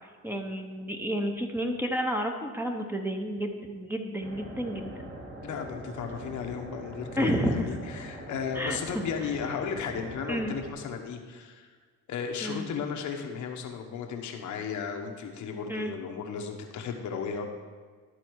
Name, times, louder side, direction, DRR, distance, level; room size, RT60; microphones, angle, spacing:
voice 1, 0.2-5.1 7.2-7.7 8.5-8.8 10.3-10.5 12.4-12.7 15.7-15.9, equal, 5° right, 4 dB, 0.9 m, -31 dB
sound 1, 4.2-10.7, right 1 dB, 35° right, 1.7 m, -43 dB
voice 2, 5.4-11.7 12.1-17.4, left 6 dB, 75° left, 3 dB, 1.0 m, -35 dB
12.5 x 4.2 x 4.6 m, 1.5 s
cardioid pair, 90°, 30 cm